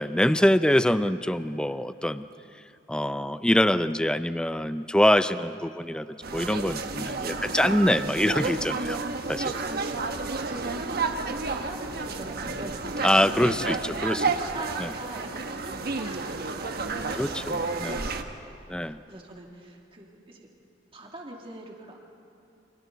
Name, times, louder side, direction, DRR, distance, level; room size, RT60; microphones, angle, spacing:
voice 1, 0.0-2.2 2.9-9.0 9.3-9.5 13.0-14.3 14.8-14.9 17.2-18.0 18.7-19.0, left 1 dB, 5° left, 12 dB, 0.5 m, -24 dB
sound 1, 6.2-18.2, right 3 dB, 55° right, 1.2 m, -31 dB
voice 2, 7.0-7.6 9.4-10.1 10.5-13.6 14.0-20.5 20.9-22.0, right 1 dB, 30° right, -1 dB, 2.5 m, -43 dB
29.5 x 25.5 x 4.1 m, 3.0 s
head